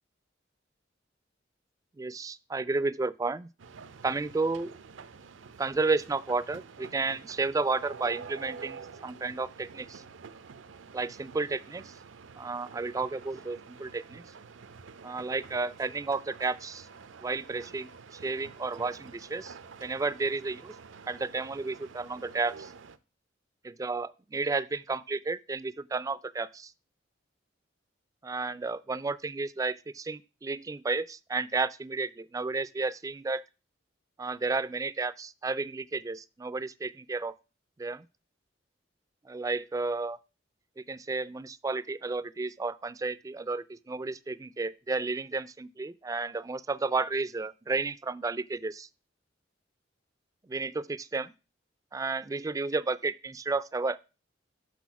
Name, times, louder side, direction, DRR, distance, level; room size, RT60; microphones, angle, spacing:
voice 1, 2.0-3.5 4.0-4.7 5.6-10.0 10.9-11.9 12.4-14.2 15.0-16.9 17.2-19.6 19.8-20.7 21.1-22.7 23.6-26.7 28.2-33.4 34.2-37.4 37.8-38.0 39.3-40.2 40.8-48.9 50.5-51.3 51.9-54.0, right 3 dB, 20° right, 0.3 m, -32 dB
sound 1, 3.6-23.0, right 5 dB, 85° right, 0.6 m, -48 dB
6.2 x 6.2 x 5.8 m
head